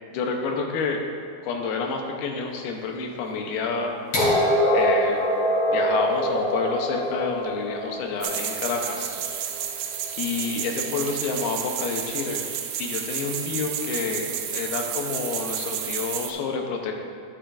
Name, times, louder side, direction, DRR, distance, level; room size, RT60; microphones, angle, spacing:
voice 1, 0.1-1.0 1.4-4.0 4.7-5.2 5.7-9.1 10.2-12.4 12.8-16.9, left 4 dB, 85° left, 2 dB, 2.8 m, -29 dB
sound 1, 4.1-10.0 11.1-11.2, equal, 40° left, 2.1 m, -24 dB
sound 2, 8.2-16.3, right 9 dB, 90° right, 2.5 m, -31 dB
11.0 x 10.0 x 2.5 m, 2.2 s
omnidirectional pair, 4.4 m